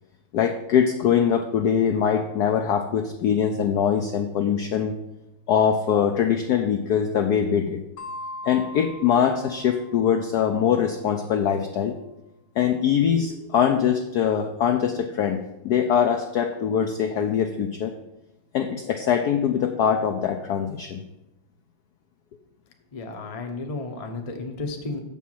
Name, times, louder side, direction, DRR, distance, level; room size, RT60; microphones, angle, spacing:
voice 1, 0.3-5.0 5.5-7.8 8.4-12.0 12.6-17.9 18.5-21.0, left 8 dB, 85° left, 6 dB, 0.8 m, -22 dB
sound 1, 8.0-10.5, left 1 dB, 65° left, 1.3 m, -40 dB
voice 2, 22.9-25.0, left 3 dB, 45° left, 3 dB, 0.4 m, -33 dB
7.2 x 5.7 x 7.5 m, 0.93 s
omnidirectional pair, 2.4 m